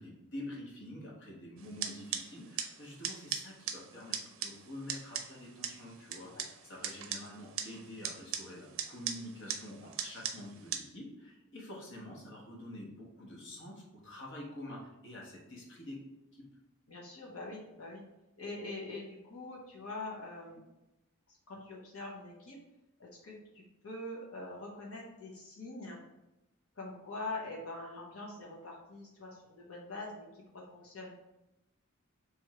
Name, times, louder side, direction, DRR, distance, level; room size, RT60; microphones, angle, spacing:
voice 1, 0.0-16.0 16.3-16.5, left 1 dB, 60° left, -2 dB, 1.1 m, -47 dB
sound 1, 1.6-10.8, right 8 dB, 65° right, 0.5 m, -41 dB
voice 2, 16.9-18.0 18.4-20.6 21.3-22.6 23.0-26.0 26.8-31.1, left 2 dB, 80° left, -4 dB, 1.0 m, -44 dB
3.5 x 3.1 x 4.7 m, 0.96 s
head